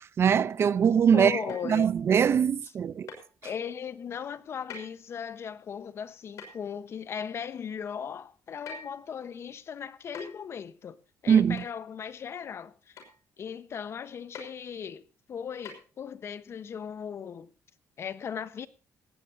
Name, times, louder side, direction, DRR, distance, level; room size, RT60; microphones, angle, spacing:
voice 1, 0.2-1.4 1.6-3.1 11.3-11.6, right 7 dB, 50° right, 0.7 m, -22 dB
voice 2, 1.1-1.9 2.6-2.7 3.4-11.0 11.2-13.0 13.4-17.5 18.0-18.7, left 7 dB, 50° left, 1.1 m, -38 dB
sound 1, 1.5-1.8 3.1-3.3 4.7-4.9 6.4-6.6 8.7-9.0 10.1-10.4 11.6-11.7 13.0-13.2 14.3-14.5 15.7-15.8, left 4 dB, 75° left, 5.9 m, -43 dB
19.0 x 16.0 x 2.8 m
cardioid pair, 115°, 6 cm